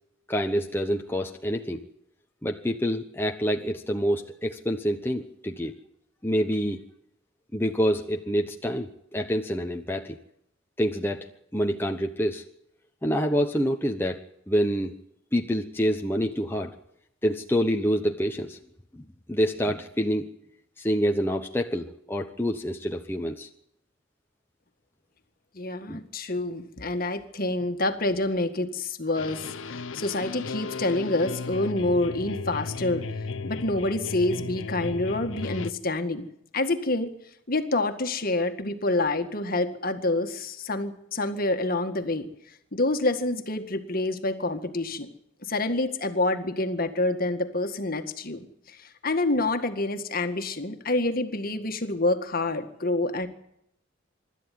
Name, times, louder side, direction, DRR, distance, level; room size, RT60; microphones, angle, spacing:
voice 1, 0.3-1.8 2.4-5.7 6.2-6.8 7.5-10.2 10.8-11.3 11.5-12.4 13.0-14.2 14.5-14.9 15.3-16.7 17.2-18.6 18.9-19.0 19.3-20.3 20.8-23.5 25.9-26.0, equal, 10° left, 3 dB, 1.0 m, -27 dB
voice 2, 25.5-33.1 33.4-36.3 36.5-37.1 37.5-42.3 42.7-45.1 45.4-53.3, left 2 dB, 45° left, 7 dB, 1.9 m, -27 dB
sound 1, 29.2-35.7, left 4 dB, 75° left, 0.8 m, -35 dB
25.5 x 12.5 x 9.4 m, 0.77 s
head